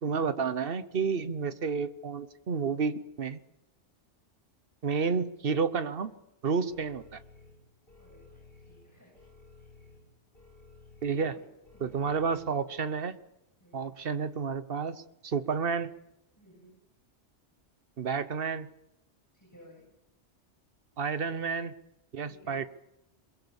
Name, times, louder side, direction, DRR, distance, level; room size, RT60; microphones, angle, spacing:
voice 1, 0.0-3.4 4.8-6.1 6.4-7.2 11.0-11.3 11.8-13.2 13.7-15.9 18.0-18.7 21.0-21.7 22.1-22.7, right 5 dB, 55° right, 13 dB, 1.2 m, -30 dB
sound 1, 6.7-12.5, left 3 dB, 50° left, 4.3 m, -56 dB
voice 2, 8.0-9.7 11.2-11.5 11.7-12.6 13.6-13.9 16.4-16.7 19.3-19.8 22.2-22.6, equal, 15° left, -1 dB, 7.7 m, -56 dB
22.5 x 22.0 x 7.1 m, 0.87 s
omnidirectional pair, 1.2 m